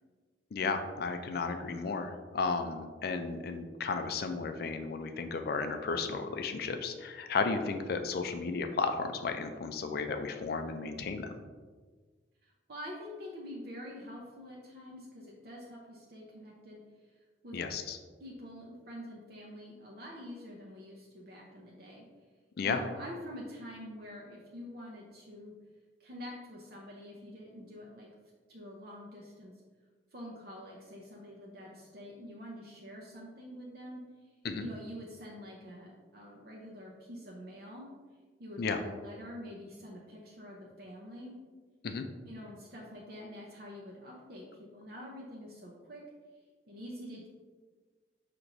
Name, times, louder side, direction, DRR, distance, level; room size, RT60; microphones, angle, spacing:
voice 1, 0.5-11.3 17.5-18.0 22.6-22.8 34.4-34.7 38.6-38.8 41.8-42.1, left 4 dB, 55° left, 7 dB, 0.4 m, -34 dB
voice 2, 12.4-16.8 17.4-17.6 18.2-22.1 22.6-25.5 26.0-28.1 28.5-29.5 30.1-34.0 34.6-37.9 38.4-41.4 42.2-46.0 46.7-47.3, equal, 55° right, -3 dB, 0.6 m, -46 dB
5.9 x 2.9 x 2.6 m, 1.4 s
head